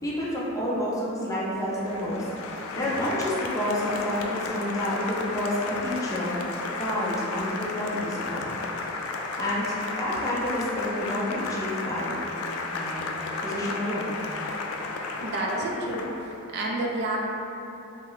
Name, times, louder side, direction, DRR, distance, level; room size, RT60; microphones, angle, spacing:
voice 1, 0.0-2.3 2.7-6.4 6.8-8.5 8.8-9.1 9.4-12.2 12.7-13.1 13.4-14.2, left 1 dB, 15° left, -7 dB, 0.5 m, -29 dB
Applause, 1.6-16.4, left 3 dB, 90° left, 0.3 m, -33 dB
voice 2, 15.2-16.1 16.5-17.2, right 2 dB, 50° right, -1 dB, 0.4 m, -29 dB
3.2 x 2.0 x 3.8 m, 2.9 s
head